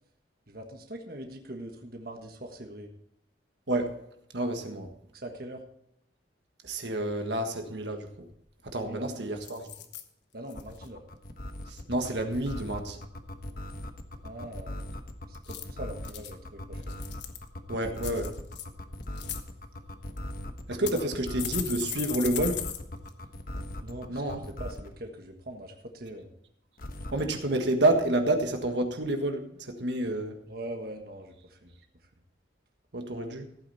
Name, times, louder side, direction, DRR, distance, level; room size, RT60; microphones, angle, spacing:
voice 1, 0.5-2.9 5.1-5.6 8.9-9.1 10.3-11.0 14.2-14.7 15.3-17.0 17.8-17.9 23.8-24.3 24.6-26.3 30.5-32.1, right 1 dB, 50° right, 3 dB, 1.4 m, -42 dB
voice 2, 3.7-4.0 4.3-4.9 6.6-8.3 8.6-9.7 11.7-13.0 17.7-18.4 20.7-22.7 24.1-24.4 27.1-30.4 32.9-33.5, right 1 dB, 65° right, 5 dB, 1.5 m, -29 dB
sound 1, 8.3-8.4 8.7-9.0 9.4-10.0 10.5-10.9 15.3-16.3 16.8-17.5 18.0-18.6 19.0-19.4 20.2-20.3 20.9-22.8 23.1-23.2 23.5-23.6, left 11 dB, 65° left, 1.2 m, -37 dB
sound 2, 10.6-25.0 26.8-27.4, left 1 dB, 50° left, 1.1 m, -39 dB
15.5 x 9.0 x 4.2 m, 0.78 s
head